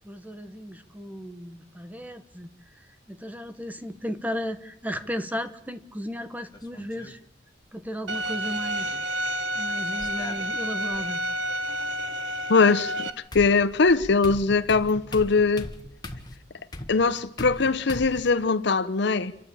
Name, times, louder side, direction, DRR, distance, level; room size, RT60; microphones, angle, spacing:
voice 1, 0.0-7.2 7.7-9.0 9.5-11.2, equal, 10° right, 1.1 m, -35 dB
sound 1, 6.5-7.1 8.4-9.0 10.0-11.0 12.7-12.8 13.3-18.3, left 1 dB, 25° left, 1.6 m, -40 dB
Bowed string instrument, 8.1-13.1, equal, 75° right, 1.2 m, -30 dB
voice 2, 12.5-12.9 13.3-15.7 16.9-19.3, left 4 dB, 65° left, 0.8 m, -21 dB
28.0 x 11.0 x 8.6 m
head